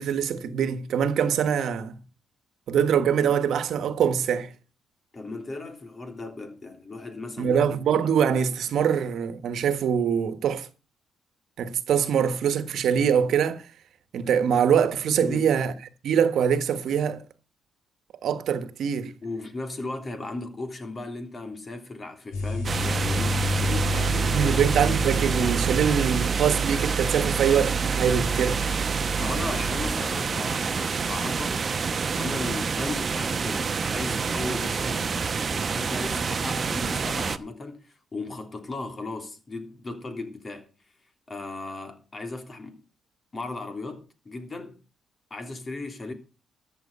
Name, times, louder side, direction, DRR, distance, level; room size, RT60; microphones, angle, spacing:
voice 1, 0.0-2.0 2.7-4.5 7.4-10.7 11.6-13.6 14.1-15.7 16.0-17.2 18.2-19.1 24.3-28.6, right 8 dB, 70° right, 1.4 m, -23 dB
voice 2, 5.1-7.6 15.2-15.5 19.2-25.2 29.2-31.6 32.2-40.7 41.3-42.8 43.3-44.8 45.3-46.1, left 2 dB, 30° left, 3.2 m, -36 dB
sound 1, 22.3-29.9, right 2 dB, 90° left, 4.8 m, -28 dB
sound 2, 22.6-37.4, right 5 dB, 40° right, 0.9 m, -28 dB
13.5 x 7.9 x 5.5 m
cardioid pair, 90°, 0 cm